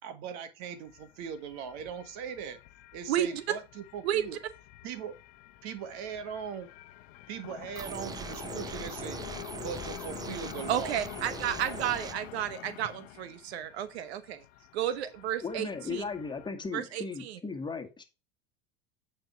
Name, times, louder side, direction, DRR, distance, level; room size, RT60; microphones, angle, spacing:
voice 1, 0.0-2.6 2.9-4.4 4.8-5.2 5.6-6.7 7.3-9.2 9.6-11.0, right 7 dB, 60° right, 1.8 m, -40 dB
sound 1, 0.6-16.5, left 17 dB, 65° left, 0.9 m, -47 dB
voice 2, 3.1-3.4 4.0-4.2 10.7-14.4 14.7-16.0 16.7-17.4, right 11 dB, 85° right, 1.0 m, -32 dB
sound 2, 7.8-12.2, right 6 dB, 15° right, 0.3 m, -41 dB
voice 3, 15.4-18.0, left 4 dB, 15° left, 1.9 m, -36 dB
9.1 x 4.5 x 4.4 m
supercardioid pair, 105°, 31 cm